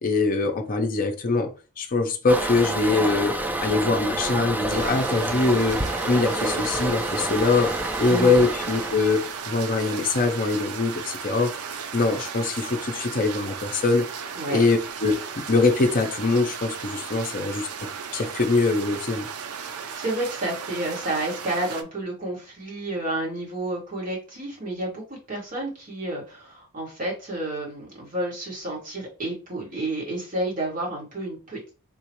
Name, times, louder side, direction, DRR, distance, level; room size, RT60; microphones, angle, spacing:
voice 1, 0.0-3.4 3.6-7.7 8.0-11.5 11.9-14.1 14.5-17.7 18.1-19.3, left 3 dB, 40° left, 0.6 m, -23 dB
Toilet flush, 2.3-9.4, right 1 dB, 10° right, 0.4 m, -28 dB
Ambience Rain Heavy C, 4.7-21.8, right 6 dB, 75° right, 0.5 m, -35 dB
voice 2, 19.6-31.7, right 1 dB, 40° right, 1.6 m, -30 dB
3.8 x 2.4 x 3.0 m
head